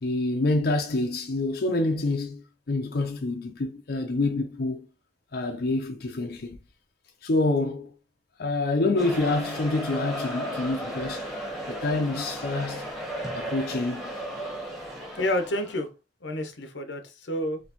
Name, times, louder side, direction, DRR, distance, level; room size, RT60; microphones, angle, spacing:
voice 1, 0.0-4.9 5.3-6.6 7.2-7.9 8.4-11.3 11.7-12.9 13.3-14.1, left 2 dB, 60° left, 0.6 m, -27 dB
sound 1, 9.0-15.8, equal, ahead, 1.2 m, -35 dB
voice 2, 15.2-15.9 16.2-17.6, left 1 dB, 90° left, 0.9 m, -29 dB
4.3 x 3.0 x 2.9 m
head